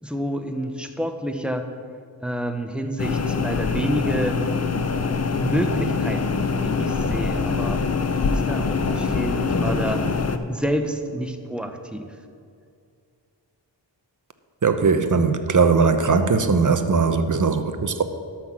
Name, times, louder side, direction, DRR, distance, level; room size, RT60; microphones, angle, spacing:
voice 1, 0.0-1.7 2.2-4.4 5.3-7.8 8.2-10.1 10.5-12.1, equal, ahead, 5 dB, 1.0 m, -28 dB
sound 1, 3.0-10.4, left 4 dB, 35° left, 0.7 m, -24 dB
voice 2, 14.6-18.0, right 4 dB, 40° right, 9 dB, 0.9 m, -19 dB
12.0 x 6.1 x 6.2 m, 2.3 s
wide cardioid pair, 65°, 46 cm